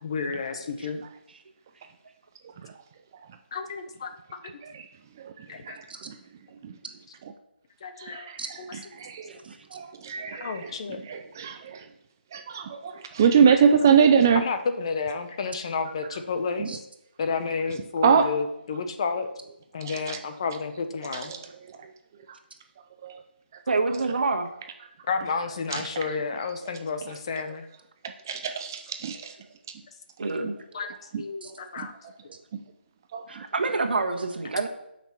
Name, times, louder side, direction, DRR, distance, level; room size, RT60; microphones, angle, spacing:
voice 1, 0.0-1.0 3.5-4.1 4.4-4.6 5.5-5.8 7.8-8.3 10.3-11.0 13.5-13.7 14.3-16.7 17.2-19.3 19.7-21.3 25.1-27.6 30.7-31.9, left 5 dB, 30° left, 8 dB, 0.8 m, -31 dB
voice 2, 5.2-6.2 6.6-6.7 8.0-9.3 9.7-10.7 11.0-11.9 12.3-14.4 16.6-16.7 18.0-18.3 19.8-20.2 21.1-21.4 23.0-23.2 25.7-25.9 27.0-27.1 28.3-29.3 31.1-31.2 31.8-31.9 32.5-32.6 33.1-33.4, right 7 dB, 15° right, 7 dB, 0.4 m, -24 dB
voice 3, 23.7-24.5 30.2-30.5 31.4-31.5 33.3-34.7, right 3 dB, 60° right, 4 dB, 1.4 m, -27 dB
13.0 x 5.9 x 4.5 m, 0.84 s
hypercardioid pair, 170°, 6 cm